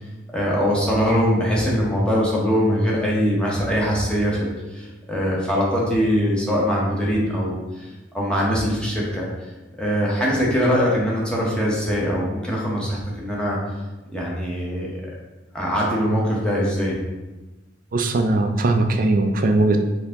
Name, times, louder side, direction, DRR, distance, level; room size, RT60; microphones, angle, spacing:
voice 1, 0.3-7.9 8.1-9.3 9.8-13.6 14.1-14.9 15.5-17.0, equal, 5° left, -5 dB, 0.8 m, -22 dB
voice 2, 17.9-19.9, right 2 dB, 45° right, 5 dB, 0.4 m, -19 dB
4.5 x 2.7 x 3.5 m, 1.1 s
head